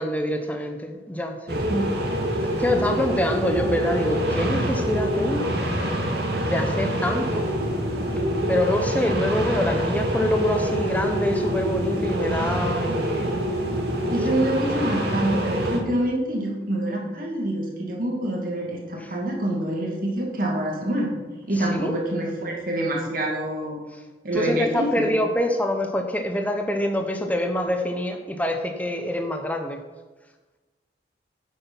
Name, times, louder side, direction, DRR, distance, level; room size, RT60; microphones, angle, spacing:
voice 1, 0.0-1.6 2.3-5.5 6.5-7.4 8.5-13.3 14.1-14.2 21.6-21.9 24.3-29.8, left 1 dB, 10° left, 4 dB, 0.9 m, -25 dB
sound 1, 1.5-15.8, equal, 65° right, 2.1 m, -25 dB
voice 2, 14.1-21.1 21.5-23.8 24.2-25.1, right 1 dB, 50° right, -1 dB, 2.5 m, -26 dB
10.0 x 8.3 x 5.6 m, 1.2 s
head